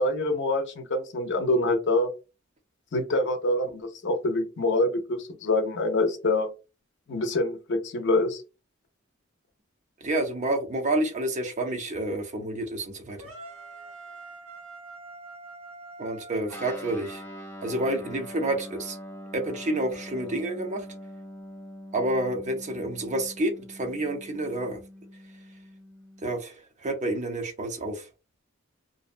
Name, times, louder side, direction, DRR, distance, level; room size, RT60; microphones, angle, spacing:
voice 1, 0.0-2.1 2.9-6.5 7.1-8.4, left 2 dB, 60° left, 0.5 m, -25 dB
voice 2, 10.0-13.3 16.0-17.2 17.6-19.0 19.3-20.9 21.9-24.8 26.2-28.1, right 1 dB, 35° right, 0.5 m, -29 dB
sound 1, 13.2-17.3, right 2 dB, 85° right, 0.9 m, -45 dB
Guitar, 16.5-26.4, equal, 10° left, 0.5 m, -43 dB
2.6 x 2.1 x 2.4 m
head